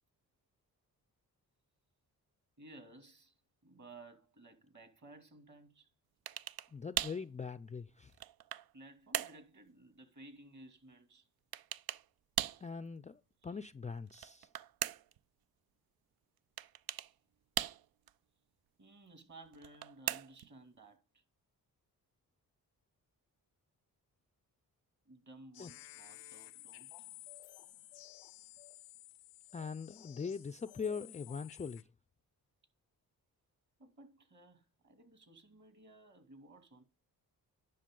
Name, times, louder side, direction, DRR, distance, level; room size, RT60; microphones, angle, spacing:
voice 1, 2.6-5.9 8.7-11.3 13.4-13.5 17.0-17.1 18.8-21.2 25.1-27.1 33.8-36.8, right 2 dB, 45° right, 2.4 m, -57 dB
sound 1, 6.3-6.7 7.0-7.2 7.9-8.7 9.1-9.4 11.5-12.0 12.4-12.7 14.1-15.2 16.6-17.1 17.6-18.1 19.5-20.5, right 12 dB, 60° right, 0.5 m, -38 dB
voice 2, 6.7-8.1 12.6-14.5 25.6-25.7 29.5-31.8, left 5 dB, 20° left, 0.4 m, -42 dB
sound 2, 25.5-31.8, left 16 dB, 90° left, 0.7 m, -54 dB
10.0 x 5.8 x 3.7 m
supercardioid pair, 45°, 41 cm